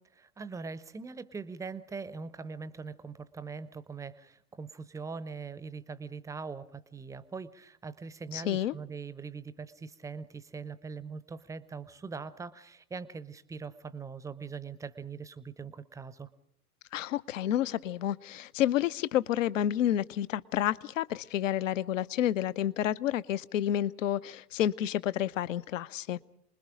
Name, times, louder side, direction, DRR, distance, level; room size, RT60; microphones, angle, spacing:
voice 1, 0.2-16.3, right 5 dB, 5° right, 15 dB, 0.7 m, -42 dB
voice 2, 8.3-8.7 16.9-26.2, left 11 dB, 60° left, 17 dB, 0.8 m, -30 dB
28.0 x 21.0 x 5.1 m, 0.72 s
figure-of-eight pair, 90°, 45 cm